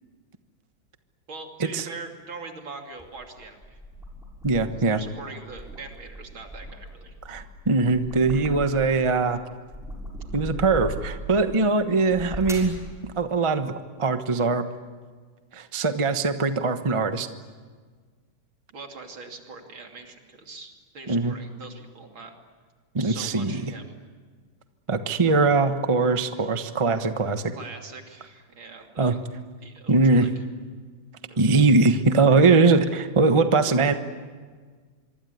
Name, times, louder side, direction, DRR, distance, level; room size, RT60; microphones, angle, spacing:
voice 1, 1.3-3.8 4.9-7.1 18.7-22.3 23.0-24.0 26.4-26.5 27.5-29.2 29.6-30.3 31.2-31.7, right 3 dB, 70° right, 3 dB, 3.7 m, -42 dB
sound 1, 3.0-4.9 5.3-9.1 9.5-11.3 12.0-12.8, right 1 dB, ahead, 6.3 m, -38 dB
voice 2, 4.4-5.0 7.3-9.4 10.3-12.8 13.2-13.7 14.0-14.7 15.5-17.3 21.1-21.3 22.9-23.7 24.9-27.5 29.0-29.2 29.9-30.3 31.4-33.9, right 3 dB, 20° right, 8 dB, 0.9 m, -21 dB
25.5 x 24.5 x 9.4 m, 1.5 s
omnidirectional pair, 2.3 m